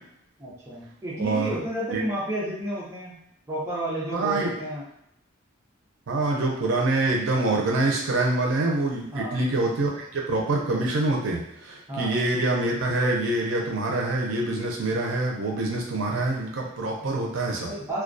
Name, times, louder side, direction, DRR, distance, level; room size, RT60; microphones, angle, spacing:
voice 1, 0.4-3.2 3.5-4.8 9.1-9.4 11.9-12.2 17.0-17.3 17.6-18.0, right 1 dB, 15° right, -7 dB, 0.6 m, -31 dB
voice 2, 1.2-1.6 1.9-2.0 4.1-4.5 6.1-17.7, right 2 dB, 80° right, -1 dB, 0.5 m, -25 dB
2.2 x 2.2 x 2.5 m, 0.75 s
head